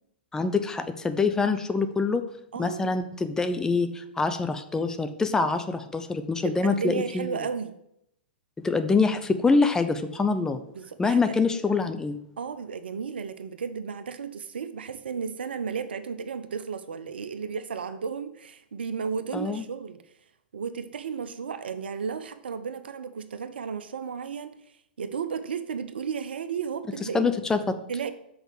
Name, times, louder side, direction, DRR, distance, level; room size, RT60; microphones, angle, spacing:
voice 1, 0.3-2.2 2.6-7.4 8.6-10.6 11.0-12.2 19.3-19.6 27.1-27.8, left 4 dB, 10° left, 9 dB, 0.6 m, -25 dB
voice 2, 2.5-3.0 6.4-7.7 10.7-11.4 12.4-20.0 20.5-24.5 25.0-27.3 27.9-28.1, right 6 dB, 70° right, 11 dB, 0.7 m, -33 dB
6.3 x 4.6 x 6.5 m, 0.77 s
hypercardioid pair, 115°, 6 cm